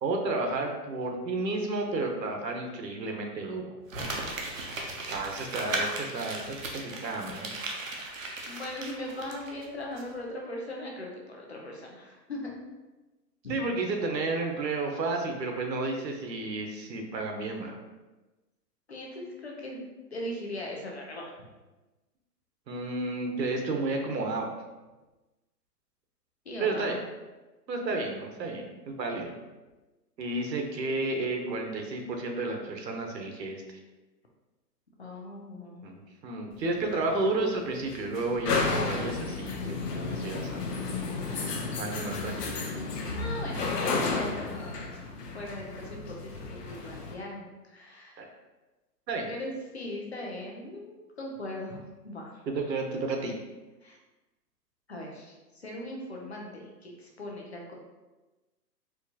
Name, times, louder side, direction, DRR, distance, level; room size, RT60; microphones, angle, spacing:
voice 1, 0.0-3.7 5.1-7.5 13.5-17.8 22.7-24.5 26.6-27.0 27.7-29.3 30.2-33.8 35.8-40.7 41.8-42.6 48.2-48.3 49.1-49.3 52.4-53.4, right 2 dB, 80° right, 2 dB, 0.9 m, -32 dB
Crumpling crinkling, 3.9-9.7 10.0-10.1, right 2 dB, 55° right, 0.6 m, -36 dB
voice 2, 8.5-12.5 18.9-19.8 20.1-21.3 26.5-27.0 35.0-35.9 43.1-44.8 45.3-47.5 47.7-48.2 49.3-52.4 53.8-54.0 54.9-57.7, left 1 dB, 40° left, -1 dB, 0.5 m, -39 dB
sound 1, 36.5-47.1, left 4 dB, 70° left, 0.8 m, -33 dB
4.5 x 2.3 x 2.7 m, 1.1 s
hypercardioid pair, 175°, 50 cm